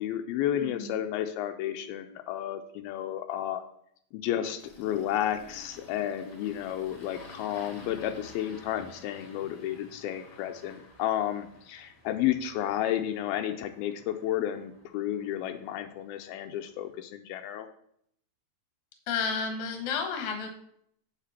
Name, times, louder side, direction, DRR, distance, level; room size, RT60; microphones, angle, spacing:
voice 1, 0.0-3.6 4.1-17.7, left 11 dB, 85° left, 6 dB, 2.4 m, -32 dB
voice 2, 0.6-1.0 19.1-20.5, left 5 dB, 60° left, 4 dB, 2.4 m, -31 dB
Engine starting, 4.6-17.0, left 2 dB, 45° left, 2.2 m, -53 dB
8.1 x 7.5 x 4.2 m, 0.70 s
omnidirectional pair, 4.3 m